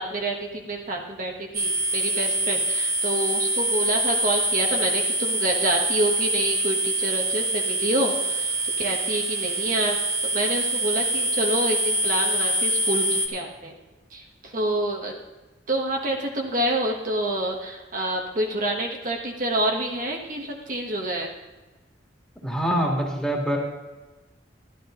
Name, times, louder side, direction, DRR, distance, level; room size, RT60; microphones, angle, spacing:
voice 1, 0.0-10.0 10.3-13.7 14.1-15.1 15.7-21.3, right 1 dB, 45° right, 0 dB, 1.4 m, -27 dB
sound 1, 1.5-13.3, right 1 dB, 15° right, 1.3 m, -25 dB
voice 2, 22.4-23.6, equal, 5° left, -2 dB, 2.1 m, -25 dB
12.5 x 12.0 x 3.8 m, 1.2 s
head